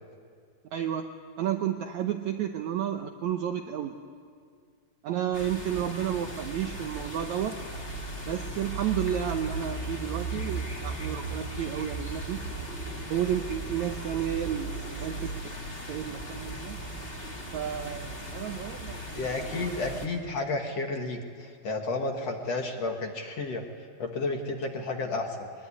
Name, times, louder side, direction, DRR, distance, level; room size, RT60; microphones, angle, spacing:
voice 1, 0.7-1.1 1.4-4.0 5.0-7.6 8.2-12.4 13.1-15.5 15.9-16.8 17.5-19.3, right 10 dB, 75° right, 5 dB, 1.7 m, -31 dB
sound 1, 5.3-20.1, right 2 dB, 20° left, 2.1 m, -37 dB
voice 2, 19.2-23.6 24.0-25.3, left 3 dB, 50° left, 3 dB, 2.3 m, -31 dB
22.5 x 21.0 x 9.8 m, 2.1 s
omnidirectional pair, 4.4 m